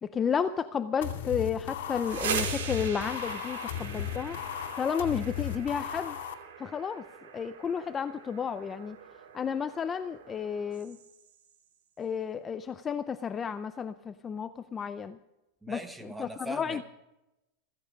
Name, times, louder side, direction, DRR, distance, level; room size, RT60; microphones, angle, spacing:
voice 1, 0.0-4.4 4.8-6.2 6.6-7.0 7.3-9.0 9.3-11.0 12.0-15.2 15.7-15.8 16.2-16.8, left 7 dB, 20° left, 11 dB, 0.5 m, -32 dB
sound 1, 1.0-6.3, left 10 dB, 75° left, 2.6 m, -36 dB
sound 2, 1.8-11.5, right 7 dB, 80° right, 4.4 m, -41 dB
voice 2, 15.6-16.8, equal, 5° right, 8 dB, 1.2 m, -40 dB
16.0 x 15.0 x 5.1 m, 0.94 s
supercardioid pair, 155°, 0 cm